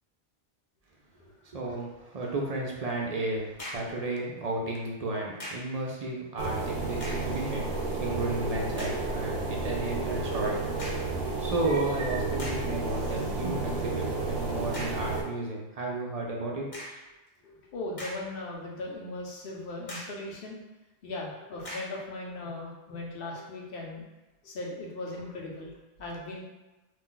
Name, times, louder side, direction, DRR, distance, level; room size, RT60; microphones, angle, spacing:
voice 1, 1.5-10.6 11.4-16.7, right 2 dB, 50° right, -2 dB, 0.5 m, -33 dB
sound 1, 3.6-4.0 5.4-5.8 6.9-7.4 8.0-8.1 8.8-9.1 10.8-11.2 11.9-12.0 12.4-12.8 14.7-15.1 16.7-17.1 17.7-18.5 18.9-19.0 19.9-20.3 21.6-22.0, equal, 40° left, 0.7 m, -41 dB
sound 2, 6.4-15.2, right 3 dB, 75° right, 0.8 m, -32 dB
voice 2, 17.4-20.6 21.0-24.0 24.4-25.7 26.0-26.4, left 2 dB, 65° left, -2 dB, 0.9 m, -38 dB
2.5 x 2.2 x 3.8 m, 1.1 s
omnidirectional pair, 1.1 m